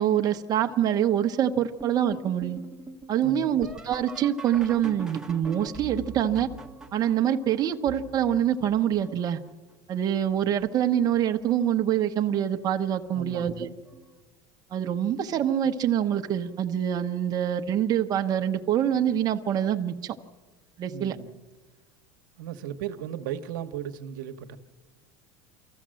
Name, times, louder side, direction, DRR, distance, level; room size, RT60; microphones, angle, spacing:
voice 1, 0.0-2.6 3.1-6.5 6.9-9.4 9.9-13.7 14.7-20.2 20.8-21.2, right 10 dB, 40° right, 1.1 m, -25 dB
sound 1, 1.8-9.5 10.1-10.7 11.1-11.8 13.0-13.1 13.9-14.2 16.3-16.5 18.8-18.9, right 3 dB, 5° right, 1.4 m, -43 dB
voice 2, 3.2-3.7 13.1-13.7 20.9-21.3 22.4-24.6, right 9 dB, 85° right, 1.2 m, -36 dB
25.0 x 14.5 x 7.7 m
supercardioid pair, 120°, 10 cm